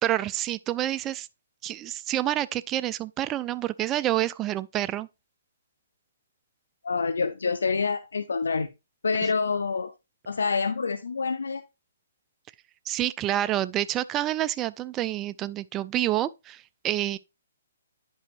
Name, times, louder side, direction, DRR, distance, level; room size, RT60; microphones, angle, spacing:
voice 1, 0.0-1.3 1.6-5.1 12.9-17.2, right 13 dB, 20° right, 0.3 m, -28 dB
voice 2, 6.8-8.7 9.0-9.9 10.3-11.6, left 4 dB, 85° left, 0.6 m, -27 dB
9.7 x 5.5 x 2.5 m
hypercardioid pair, 150°, 0 cm